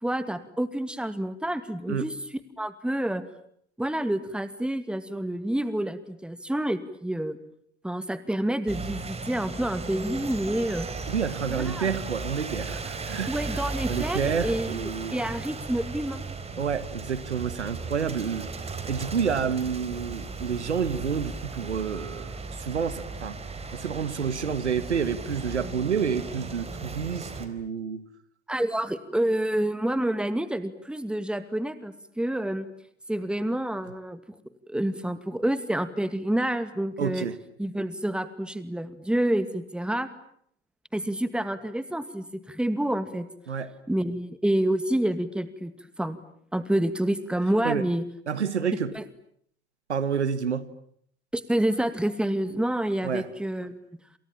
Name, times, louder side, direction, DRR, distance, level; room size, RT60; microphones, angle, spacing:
voice 1, 0.0-2.1 2.6-3.2 3.8-7.4 7.8-10.9 11.5-11.9 13.3-16.2 16.5-16.6 28.5-32.7 33.1-34.2 34.7-37.3 37.6-40.1 40.9-43.3 43.9-45.7 46.0-46.2 46.5-48.0 48.9-49.0 51.3-53.8, right 1 dB, 5° right, 11 dB, 2.4 m, -28 dB
sound 1, 8.7-27.5, right 4 dB, 20° right, 4.3 m, -36 dB
voice 2, 11.1-15.2 16.6-18.5 18.9-23.4 23.7-28.1 37.0-37.4 43.5-43.7 47.6-47.8 48.3-48.9 49.9-50.7 53.0-53.3, right 6 dB, 80° right, 14 dB, 1.8 m, -29 dB
28.5 x 28.5 x 7.3 m, 0.66 s
figure-of-eight pair, 75°, 34 cm